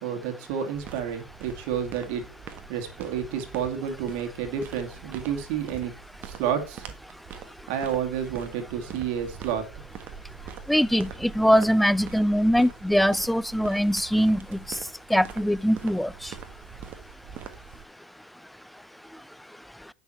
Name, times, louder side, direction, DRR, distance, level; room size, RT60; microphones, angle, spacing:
voice 1, 0.0-2.3 2.7-5.9 6.2-6.9 7.7-9.6, right 8 dB, 60° right, 2.5 m, -30 dB
sound 1, 0.7-17.9, right 7 dB, 40° right, 1.5 m, -44 dB
voice 2, 10.7-14.6 15.1-16.3, equal, ahead, 0.3 m, -22 dB
9.5 x 6.3 x 4.4 m
hypercardioid pair, 110°, 5 cm